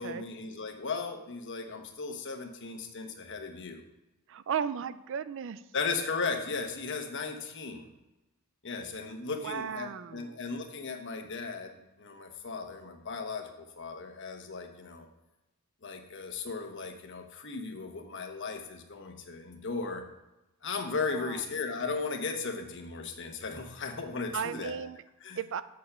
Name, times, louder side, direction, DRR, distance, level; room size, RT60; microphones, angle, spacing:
voice 1, 0.0-3.8 5.7-7.9 8.6-15.1 15.8-20.0 20.6-24.8 25.2-25.4, left 4 dB, 55° left, 4 dB, 1.1 m, -36 dB
voice 2, 4.3-5.6 9.4-10.4 21.1-21.5 24.3-25.0 25.3-25.6, right 7 dB, 60° right, 14 dB, 0.4 m, -35 dB
7.4 x 6.8 x 5.7 m, 0.99 s
head